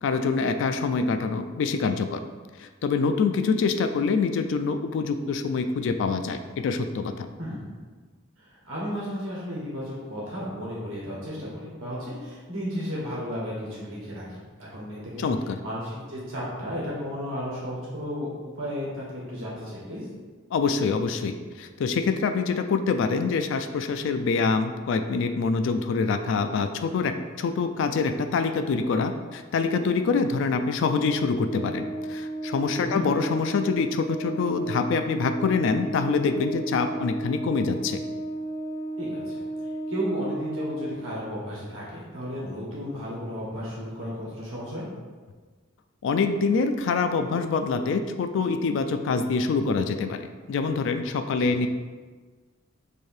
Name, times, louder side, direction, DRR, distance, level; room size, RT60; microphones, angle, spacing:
voice 1, 0.0-2.2 2.6-7.3 15.2-15.6 20.5-38.0 46.0-51.7, left 4 dB, 65° left, 8 dB, 0.3 m, -25 dB
voice 2, 7.4-7.8 8.4-15.3 15.6-20.1 32.8-33.0 39.0-39.4 39.9-44.8 51.4-51.6, equal, 80° right, -6 dB, 1.2 m, -34 dB
Organ, 30.8-41.5, right 1 dB, 85° left, 1.3 m, -34 dB
3.1 x 2.8 x 4.4 m, 1.4 s
head